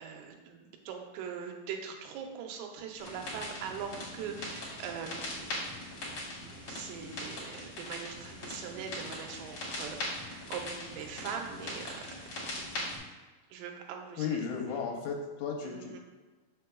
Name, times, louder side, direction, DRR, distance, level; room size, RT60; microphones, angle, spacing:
voice 1, 0.0-5.6 6.7-12.1 13.5-14.5 15.6-16.0, right 7 dB, 85° right, 2 dB, 3.3 m, -42 dB
sound 1, 3.0-13.0, left 1 dB, 55° left, 1.5 m, -40 dB
voice 2, 14.2-16.0, left 6 dB, 85° left, 1 dB, 3.1 m, -35 dB
7.1 x 6.5 x 2.3 m, 1.3 s
omnidirectional pair, 5.6 m